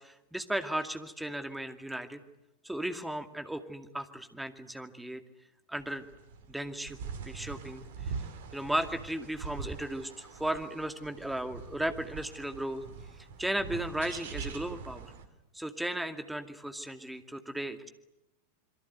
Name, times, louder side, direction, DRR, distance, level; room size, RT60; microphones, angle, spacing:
voice 1, 0.0-2.2 2.6-5.2 5.7-6.1 6.5-7.0 7.3-8.1 8.5-12.8 13.4-15.1 15.5-17.9, right 1 dB, 5° right, 8 dB, 2.3 m, -35 dB
sound 1, 5.8-15.3, right 5 dB, 55° right, 2.9 m, -43 dB
27.0 x 23.0 x 9.4 m, 0.90 s
figure-of-eight pair, 90°, 0 cm